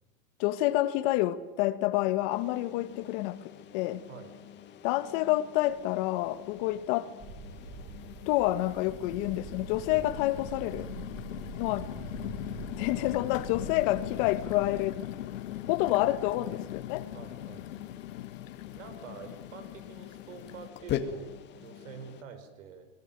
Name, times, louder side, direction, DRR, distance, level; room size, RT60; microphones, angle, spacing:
voice 1, 0.4-3.4 3.7-4.0 4.8-7.1 8.3-10.9 11.5-11.9 12.7-15.0 15.7-17.1, left 16 dB, 45° left, 1.6 m, -28 dB
sound 1, 2.3-22.2, left 9 dB, 25° left, 2.1 m, -45 dB
sound 2, 5.7-5.8 6.2-6.9 7.5-20.7, left 13 dB, 75° left, 1.6 m, -41 dB
sound 3, 7.2-14.9, right 4 dB, 15° right, 5.8 m, -44 dB
voice 2, 17.1-17.7 18.7-22.9, right 6 dB, 75° right, 5.8 m, -47 dB
25.0 x 21.0 x 9.1 m
supercardioid pair, 150°, 39 cm